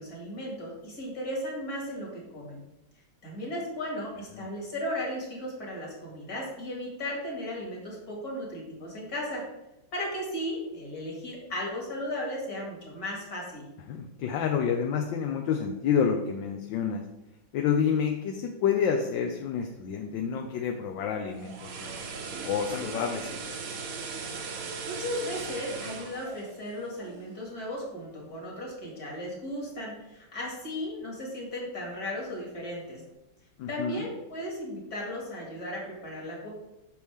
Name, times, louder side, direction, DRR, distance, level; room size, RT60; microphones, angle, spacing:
voice 1, 0.0-2.6 3.2-9.4 9.9-13.6 24.9-33.0 33.7-36.5, left 1 dB, 50° left, -2 dB, 2.6 m, -36 dB
voice 2, 13.9-17.0 17.5-22.0 22.4-23.6 33.6-34.0, left 7 dB, 75° left, 4 dB, 1.3 m, -29 dB
sound 1, 21.2-27.4 27.7-27.9, right 4 dB, 55° right, 1.2 m, -38 dB
8.5 x 6.2 x 3.5 m, 0.95 s
omnidirectional pair, 2.1 m